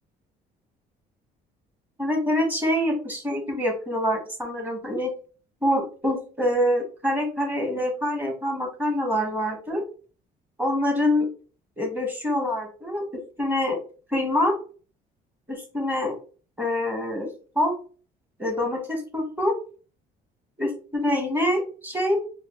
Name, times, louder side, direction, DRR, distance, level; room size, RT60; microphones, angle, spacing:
voice 1, 2.0-5.1 5.6-9.8 10.6-11.3 11.8-13.0 13.4-13.8 14.1-14.6 15.5-16.1 16.6-17.3 17.5-17.7 18.4-19.5 20.6-22.2, left 1 dB, 10° right, 2 dB, 1.2 m, -25 dB
4.3 x 2.1 x 3.1 m, 0.38 s
cardioid pair, 110°, 17 cm